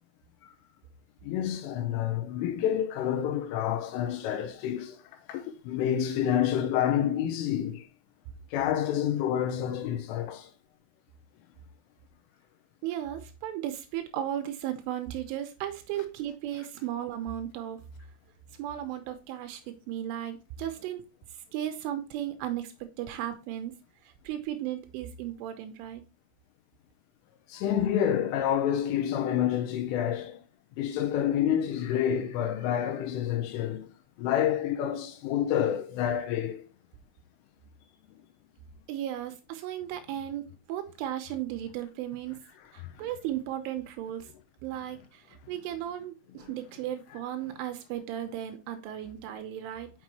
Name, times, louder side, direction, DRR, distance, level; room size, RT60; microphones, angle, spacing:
voice 1, 1.2-5.0 5.3-7.8 8.5-10.5 27.5-30.4 30.8-33.9 34.2-36.6, left 10 dB, 85° left, 3.3 m, -28 dB
voice 2, 12.8-17.8 18.6-21.0 21.5-23.7 24.0-26.0 38.9-42.4 42.7-44.3 44.6-49.9, right 11 dB, 80° right, 3.2 m, -35 dB
7.3 x 6.1 x 3.1 m
omnidirectional pair, 5.9 m